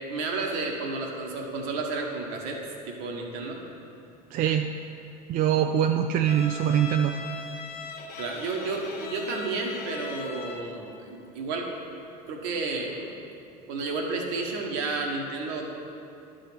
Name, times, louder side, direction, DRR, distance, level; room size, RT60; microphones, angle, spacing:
voice 1, 0.1-2.6 2.9-3.6 8.2-11.7 12.3-13.1 13.7-15.6, right 3 dB, 65° right, 1 dB, 1.3 m, -31 dB
voice 2, 4.3-4.6 5.3-7.1, right 10 dB, 45° right, 5 dB, 0.4 m, -23 dB
Bowed string instrument, 6.2-10.8, left 4 dB, 50° left, 0.9 m, -40 dB
11.0 x 3.9 x 6.0 m, 2.7 s
hypercardioid pair, 65°, 20 cm